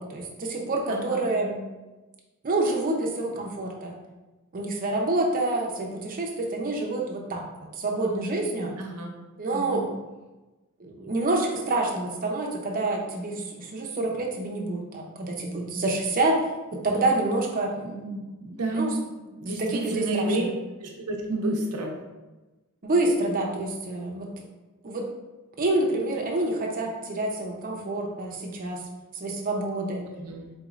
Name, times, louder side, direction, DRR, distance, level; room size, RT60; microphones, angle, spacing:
voice 1, 0.0-1.7 2.4-3.9 4.5-7.4 7.8-8.7 9.4-9.8 10.8-16.4 16.7-17.7 18.7-18.9 19.5-20.5 22.8-24.3 24.8-25.1 25.6-28.8 29.1-30.0, right 2 dB, 40° right, -1 dB, 0.6 m, -27 dB
voice 2, 0.9-1.3 8.8-9.1 9.5-9.9 17.8-20.4 20.8-22.0 30.1-30.4, right 2 dB, 85° right, 0 dB, 0.7 m, -31 dB
4.2 x 3.1 x 2.4 m, 1.1 s
head